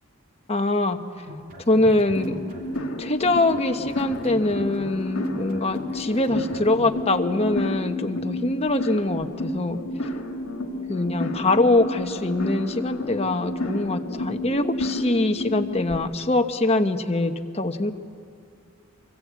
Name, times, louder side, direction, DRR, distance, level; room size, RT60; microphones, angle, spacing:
voice 1, 0.5-1.0 1.7-2.3 3.0-9.8 10.9-17.9, left 2 dB, 30° left, 6 dB, 1.1 m, -23 dB
sound 1, 1.2-3.0 3.2-7.0, left 1 dB, 40° right, 2.8 m, -41 dB
sound 2, 2.1-15.9, left 1 dB, 70° left, 2.1 m, -31 dB
25.0 x 24.0 x 8.3 m, 2.3 s
head